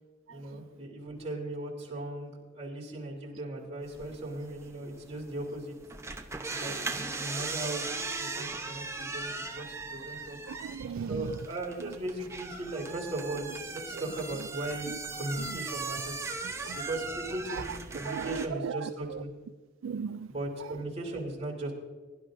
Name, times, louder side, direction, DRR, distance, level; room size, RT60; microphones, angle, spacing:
voice 1, 0.3-5.7 6.5-10.4 11.1-16.3 16.7-19.3 20.3-21.7, right 1 dB, 35° right, 3.3 m, -38 dB
sound 1, 3.8-18.5, right 3 dB, 15° right, 0.8 m, -39 dB
voice 2, 10.5-11.3 16.6-16.8 18.1-18.7 19.8-20.3, right 6 dB, 90° right, 0.4 m, -35 dB
22.0 x 12.0 x 2.7 m
head